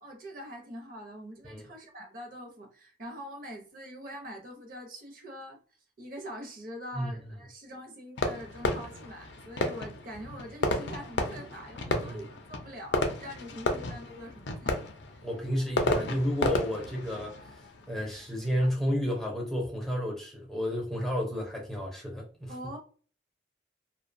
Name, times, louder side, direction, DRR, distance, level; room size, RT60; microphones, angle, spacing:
voice 1, 0.0-5.6 6.0-14.8 22.5-22.8, equal, 45° right, 0.7 m, -44 dB
Fireworks, 8.2-18.7, left 2 dB, 70° left, 0.5 m, -33 dB
voice 2, 11.8-12.2 15.2-17.3 17.9-22.5, equal, ahead, 0.5 m, -31 dB
2.6 x 2.2 x 2.5 m
head